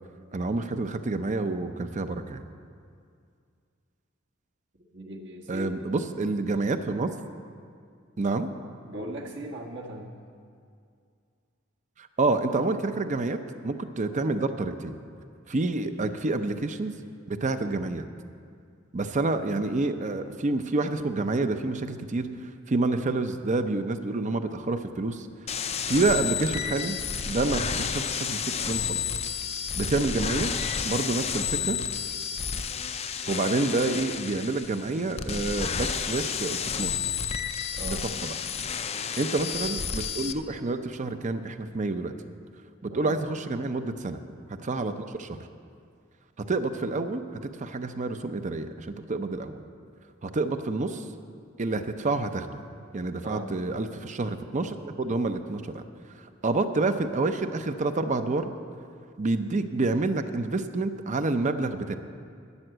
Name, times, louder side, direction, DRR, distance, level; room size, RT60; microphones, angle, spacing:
voice 1, 0.3-2.4 5.5-7.1 8.2-8.5 12.2-13.4 13.6-15.0 15.5-16.9 17.3-18.0 18.9-22.3 22.7-25.3 25.9-29.0 29.7-30.5 30.8-31.8 33.3-36.9 37.9-38.0 38.2-38.3 39.2-42.1 42.8-44.2 44.6-45.4 46.5-47.2 47.6-49.6 50.2-51.0 51.6-52.6 52.9-55.8 56.4-58.5 59.2-61.9, right 3 dB, 40° right, 9 dB, 0.6 m, -28 dB
voice 2, 4.9-5.7 8.9-10.1 37.8-38.0 42.9-43.1 53.2-53.5, right 1 dB, 65° right, 0 dB, 1.6 m, -38 dB
sound 1, 25.5-40.3, left 7 dB, 30° left, 0.5 m, -31 dB
12.5 x 7.1 x 7.8 m, 2.3 s
head